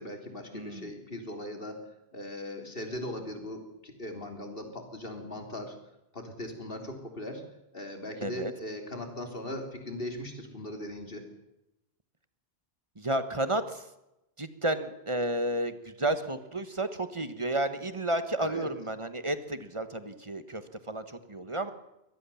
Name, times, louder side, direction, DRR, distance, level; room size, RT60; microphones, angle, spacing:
voice 1, 0.0-1.8 2.1-5.8 6.1-7.4 7.7-11.3 18.4-18.7, left 1 dB, 60° left, 5 dB, 3.7 m, -39 dB
voice 2, 0.5-0.9 8.2-8.5 13.0-13.9 14.4-21.7, right 1 dB, 30° right, 11 dB, 1.4 m, -32 dB
23.5 x 18.5 x 7.2 m, 0.90 s
omnidirectional pair, 1.1 m